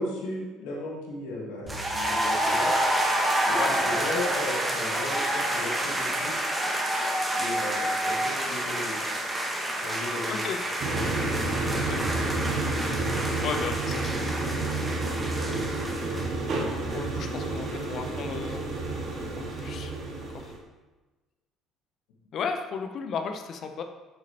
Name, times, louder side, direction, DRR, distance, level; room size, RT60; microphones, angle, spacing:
voice 1, 0.0-2.7 3.5-6.3 7.3-9.0 9.8-10.5, left 1 dB, 75° left, -2 dB, 1.5 m, -35 dB
sound 1, 1.7-16.3, right 1 dB, 15° right, 1.6 m, -28 dB
sound 2, 10.8-20.6, right 2 dB, 55° right, 1.9 m, -30 dB
voice 2, 11.7-12.0 13.4-14.4 16.9-18.6 19.4-19.9 22.3-23.8, left 6 dB, 55° left, 6 dB, 0.7 m, -34 dB
8.1 x 6.1 x 2.9 m, 1.2 s
hypercardioid pair, 65°, 0 cm